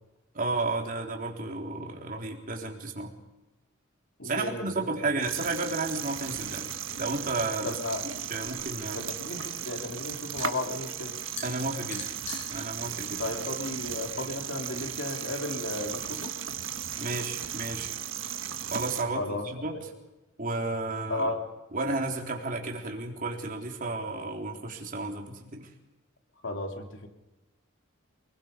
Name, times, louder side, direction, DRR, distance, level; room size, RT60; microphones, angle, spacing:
voice 1, 0.3-3.1 4.2-6.7 7.0-9.0 11.4-12.1 12.5-13.2 17.0-17.9 18.7-19.9 20.4-21.3 21.7-25.7, right 3 dB, 45° right, 1 dB, 3.9 m, -32 dB
voice 2, 4.2-5.2 7.6-8.0 8.9-11.1 13.2-16.3 19.2-19.4 21.1-21.4 26.4-27.1, left 2 dB, 65° left, 4 dB, 3.3 m, -34 dB
sound 1, 5.2-19.0, right 9 dB, 75° right, 1.6 m, -36 dB
sound 2, 9.7-14.6, left 3 dB, 35° left, 6.4 m, -46 dB
28.5 x 21.5 x 5.3 m, 1.1 s
head